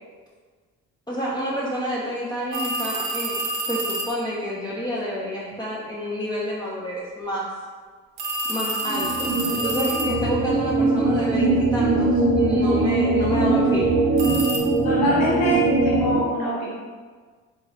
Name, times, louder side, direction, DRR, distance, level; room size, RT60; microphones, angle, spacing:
voice 1, 1.1-7.5 8.5-13.9, equal, 10° left, -8 dB, 0.7 m, -29 dB
sound 1, 2.5-4.2 8.2-10.5 14.2-14.6, right 2 dB, 65° right, 0.7 m, -28 dB
sound 2, 8.8-16.2, right 2 dB, 25° right, 0.8 m, -21 dB
voice 2, 14.8-16.7, equal, 85° left, -5 dB, 0.8 m, -24 dB
3.8 x 2.5 x 3.2 m, 1.5 s
hypercardioid pair, 50°, 41 cm